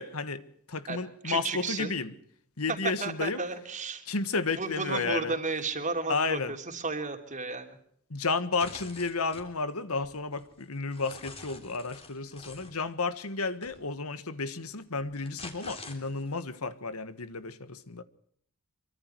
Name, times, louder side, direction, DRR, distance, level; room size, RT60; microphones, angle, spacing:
voice 1, 0.0-2.1 2.6-3.4 4.1-5.3 6.1-6.6 8.1-18.0, left 4 dB, 75° left, 1.5 m, -32 dB
voice 2, 1.2-1.9 3.0-4.0 4.6-7.8, right 3 dB, 35° right, 3.2 m, -33 dB
sound 1, 8.6-9.5 10.0-12.7 13.6-13.8 15.0-16.4, left 3 dB, 25° left, 3.6 m, -47 dB
25.5 x 24.0 x 4.6 m
head